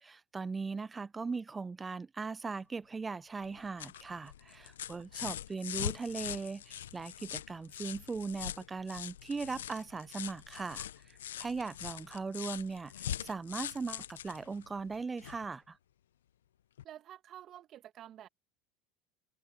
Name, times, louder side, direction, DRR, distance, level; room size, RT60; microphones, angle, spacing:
voice 1, 0.0-15.8, right 4 dB, 20° right, 0.6 m, -39 dB
sound 1, 3.4-15.5 16.8-16.9, left 11 dB, 90° left, 0.7 m, -42 dB
voice 2, 16.8-18.3, right 11 dB, 50° right, 1.8 m, -50 dB
hypercardioid pair, 85°, 0 cm